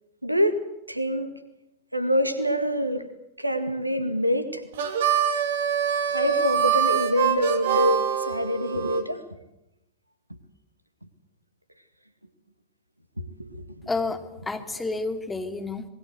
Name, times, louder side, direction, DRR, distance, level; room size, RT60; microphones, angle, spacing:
voice 1, 0.2-1.4 1.9-3.1 3.4-4.7 6.1-9.2 13.2-13.6, equal, 85° right, 11 dB, 2.0 m, -26 dB
Harmonica, 4.7-9.0, right 8 dB, 60° right, 2.5 m, -24 dB
voice 2, 13.9-15.9, left 3 dB, 10° left, 6 dB, 2.7 m, -30 dB
26.5 x 21.0 x 8.0 m, 0.86 s
figure-of-eight pair, 90°, 0 cm